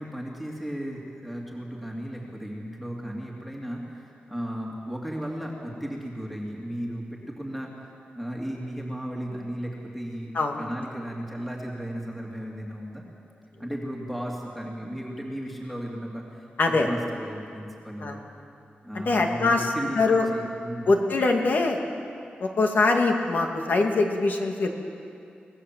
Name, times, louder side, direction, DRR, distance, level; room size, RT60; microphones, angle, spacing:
voice 1, 0.0-13.0 13.6-18.2 18.8-21.0, equal, ahead, -2 dB, 2.5 m, -35 dB
voice 2, 16.6-16.9 18.0-18.2 19.1-19.7 20.0-20.3 20.9-21.8 22.4-24.7, left 3 dB, 60° left, 2 dB, 2.4 m, -23 dB
25.0 x 19.0 x 7.5 m, 2.5 s
wide cardioid pair, 170°, 4 cm